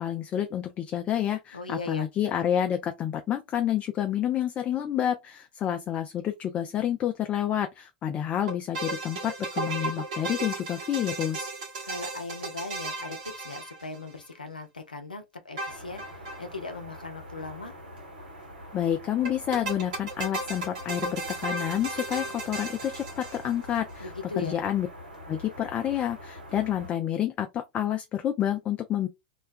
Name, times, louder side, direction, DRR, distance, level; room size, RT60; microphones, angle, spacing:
voice 1, 0.0-11.5 18.7-24.9 25.3-29.1, left 10 dB, 30° left, 0.3 m, -29 dB
voice 2, 1.5-2.1 11.8-17.8 24.0-24.6, left 3 dB, 90° left, 0.5 m, -38 dB
sound 1, 8.5-14.3 15.6-16.4 16.7-16.8 16.9-17.0 19.3-23.8, right 2 dB, 60° right, 0.9 m, -35 dB
sound 2, 15.7-26.9, equal, 85° right, 1.0 m, -45 dB
2.3 x 2.1 x 2.5 m
figure-of-eight pair, 90°, 5 cm